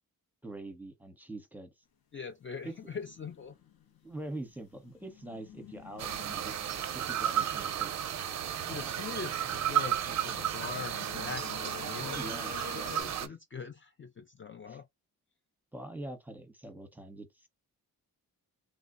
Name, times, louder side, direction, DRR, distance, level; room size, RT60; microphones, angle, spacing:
voice 1, 0.4-1.7 2.6-2.8 4.0-6.6 6.9-7.9 8.7-9.0 12.1-13.3 14.7-14.8 15.7-17.5, right 2 dB, 5° right, 0.8 m, -44 dB
voice 2, 2.1-3.6 8.5-12.3 12.9-14.9, left 5 dB, 35° left, 0.4 m, -42 dB
sound 1, 2.6-13.0, left 7 dB, 70° left, 0.8 m, -50 dB
sound 2, 6.0-13.3, right 10 dB, 50° right, 0.4 m, -33 dB
3.2 x 2.0 x 2.4 m
cardioid pair, 65°, 37 cm